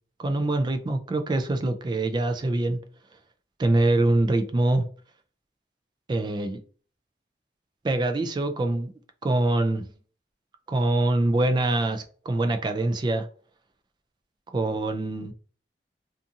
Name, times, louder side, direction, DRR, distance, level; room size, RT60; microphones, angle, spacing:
voice 1, 0.2-2.8 3.6-4.9 6.1-6.6 7.8-8.9 9.2-9.8 10.7-13.3 14.5-15.3, right 2 dB, 25° right, 0.3 m, -24 dB
2.5 x 2.4 x 2.6 m
head